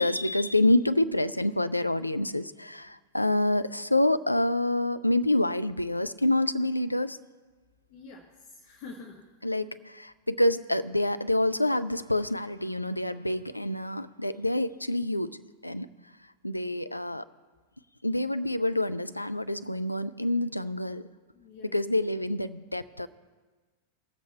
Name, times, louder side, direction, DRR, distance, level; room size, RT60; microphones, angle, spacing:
voice 1, 0.0-7.2 9.4-15.4 15.6-15.9 16.4-17.2 18.0-21.0 21.7-23.1, left 1 dB, 85° left, 11 dB, 0.3 m, -27 dB
voice 2, 7.9-9.2 21.3-21.7, left 4 dB, 45° left, 4 dB, 0.9 m, -47 dB
18.5 x 7.3 x 3.3 m, 1.3 s
figure-of-eight pair, 90°, 0 cm